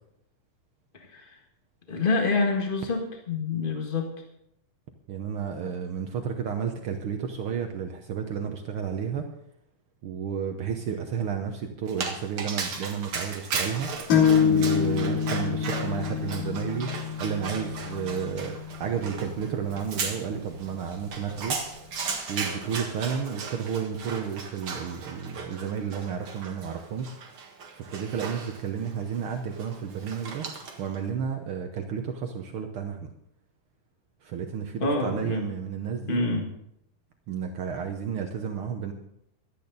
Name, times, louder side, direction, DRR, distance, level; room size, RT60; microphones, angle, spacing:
voice 1, 0.9-1.4 1.9-4.1 34.8-35.5 36.1-36.5, left 3 dB, 35° left, 1 dB, 0.8 m, -27 dB
voice 2, 5.1-9.3 10.0-13.9 14.4-21.6 22.3-27.2 27.7-30.5 30.8-33.1 34.2-36.2 37.3-38.9, right 7 dB, 75° right, 4 dB, 1.2 m, -32 dB
Dog, 11.9-31.0, right 5 dB, 45° right, 2.2 m, -37 dB
sound 1, 14.1-21.6, left 7 dB, 80° left, 4.7 m, -27 dB
17.5 x 12.5 x 4.0 m, 0.76 s
omnidirectional pair, 3.8 m